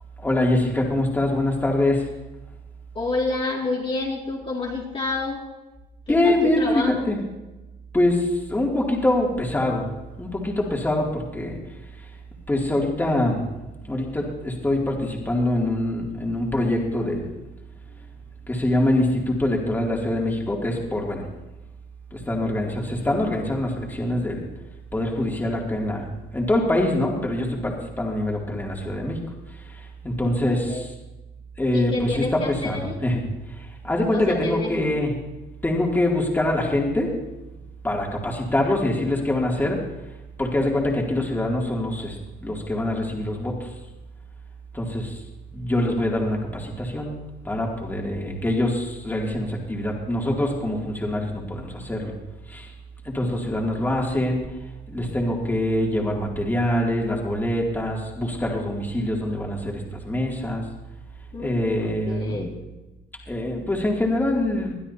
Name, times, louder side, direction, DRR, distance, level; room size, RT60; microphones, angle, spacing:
voice 1, 0.2-2.1 6.1-7.2 7.9-9.8 10.2-11.6 12.0-12.1 12.5-13.4 13.8-17.3 18.5-21.3 22.1-24.5 24.9-29.2 29.5-30.9 31.6-33.2 33.5-35.1 35.6-37.1 37.8-39.8 40.4-43.7 44.7-45.2 45.5-47.2 47.4-52.1 52.5-52.7 53.0-54.4 54.9-60.6 61.4-62.4 63.3-64.7, left 1 dB, 10° left, -2 dB, 2.7 m, -24 dB
voice 2, 2.9-5.4 6.1-7.1 30.2-30.8 31.7-33.0 34.1-34.8 61.3-62.6, left 3 dB, 30° left, -3 dB, 2.4 m, -29 dB
21.0 x 12.0 x 2.8 m, 1.0 s
cardioid pair, 110°, 17 cm